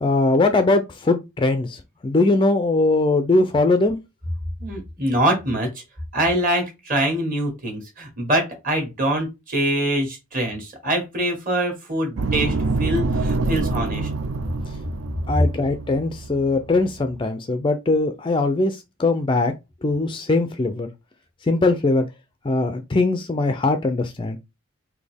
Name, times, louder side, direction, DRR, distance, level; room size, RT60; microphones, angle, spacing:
voice 1, 0.0-4.0 15.3-19.5 19.8-20.9 21.4-22.1 22.4-24.4, left 2 dB, 20° left, 0.3 m, -21 dB
voice 2, 4.6-5.8 6.1-14.1, right 1 dB, 40° right, 1.6 m, -24 dB
sound 1, 12.2-17.2, right 3 dB, 70° right, 0.5 m, -26 dB
4.2 x 2.7 x 3.4 m
head